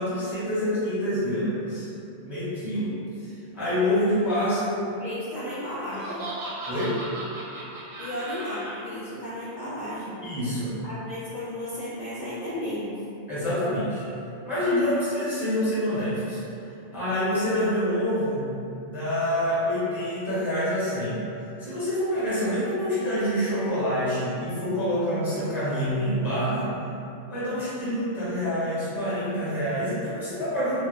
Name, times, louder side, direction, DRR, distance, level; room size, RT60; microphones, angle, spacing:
voice 1, 0.0-1.9 2.2-4.6 6.6-7.0 10.2-10.7 13.3-14.0 14.4-16.4 16.9-18.5 18.8-21.2 21.6-26.8 27.3-30.9, equal, ahead, -11 dB, 0.6 m, -26 dB
voice 2, 4.7-6.3 8.0-10.2 10.8-13.0, left 1 dB, 60° left, -10 dB, 0.5 m, -34 dB
Laughter, 5.8-8.8, right 2 dB, 60° right, 0.6 m, -37 dB
2.1 x 2.0 x 3.0 m, 2.6 s
omnidirectional pair, 1.2 m